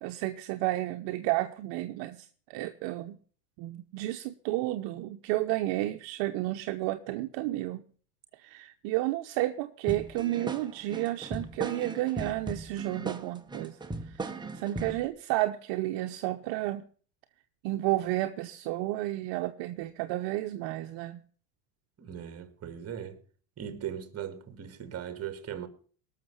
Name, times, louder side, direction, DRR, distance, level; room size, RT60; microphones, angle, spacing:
voice 1, 0.0-3.2 3.6-7.9 8.3-13.8 14.0-16.8 17.6-21.2, right 16 dB, 60° right, 1.0 m, -32 dB
sound 1, 9.9-15.1, right 3 dB, 10° right, 1.2 m, -38 dB
voice 2, 22.0-23.2 23.6-25.7, right 9 dB, 30° right, 2.2 m, -39 dB
18.0 x 6.7 x 7.1 m
supercardioid pair, 120°, 50 cm